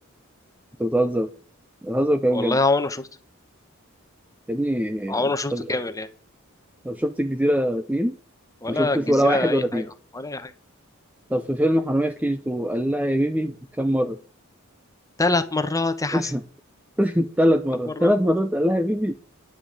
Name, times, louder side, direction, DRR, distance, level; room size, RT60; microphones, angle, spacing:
voice 1, 0.8-1.3 1.8-2.6 4.5-5.8 6.8-8.2 8.7-9.9 11.3-14.2 16.1-16.4 17.0-19.1, equal, 5° right, 0.6 m, -23 dB
voice 2, 2.3-3.0 5.1-6.1 8.6-9.9 10.2-10.5 15.2-16.3 18.0-18.1, left 2 dB, 15° left, 1.0 m, -24 dB
10.5 x 5.7 x 8.3 m
head